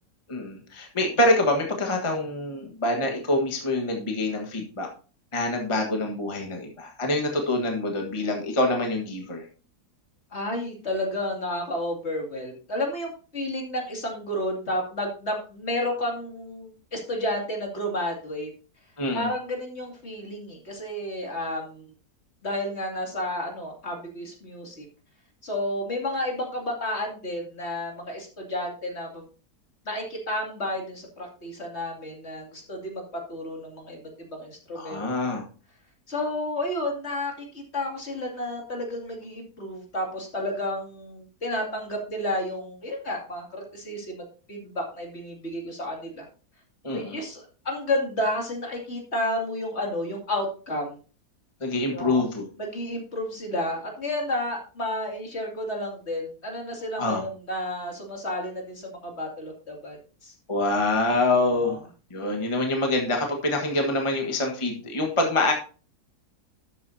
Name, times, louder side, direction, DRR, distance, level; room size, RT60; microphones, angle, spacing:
voice 1, 0.3-4.9 5.3-9.4 19.0-19.3 34.7-35.4 46.8-47.2 51.6-52.5 57.0-57.2 60.5-61.8 62.1-65.5, left 2 dB, 20° left, 2 dB, 1.4 m, -25 dB
voice 2, 10.3-18.5 19.1-21.9 22.4-24.8 25.4-29.2 29.8-33.0 33.3-35.3 36.1-44.2 44.5-46.3 46.9-51.0 51.9-52.2 52.6-60.0 60.2-60.3 61.6-61.8, left 1 dB, 40° left, 1 dB, 2.7 m, -31 dB
12.5 x 8.0 x 2.7 m, 0.36 s
omnidirectional pair, 1.7 m